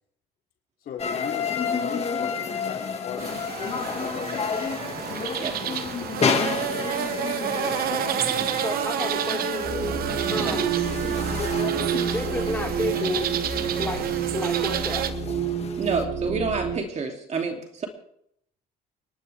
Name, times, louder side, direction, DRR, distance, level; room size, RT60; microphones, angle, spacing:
voice 1, 0.8-3.4 3.9-4.7 5.8-6.9 12.5-12.6 13.1-13.3 13.7-13.9 14.2-14.3 16.2-16.3, left 8 dB, 60° left, 1 dB, 3.4 m, -39 dB
sound 1, 1.0-16.0, left 6 dB, 40° left, 2.0 m, -31 dB
sound 2, 3.2-15.1, right 10 dB, 65° right, 1.1 m, -30 dB
voice 2, 5.3-5.6 10.4-10.6 15.8-17.9, right 4 dB, 40° right, 3 dB, 2.9 m, -29 dB
voice 3, 8.5-9.7 10.3-10.8 12.0-13.5 13.8-14.1 14.3-15.0, left 2 dB, 10° left, -1 dB, 4.5 m, -31 dB
sound 3, 9.6-16.8, right 7 dB, 90° right, 4.0 m, -29 dB
29.5 x 11.5 x 3.5 m, 0.71 s
cardioid pair, 110°, 17 cm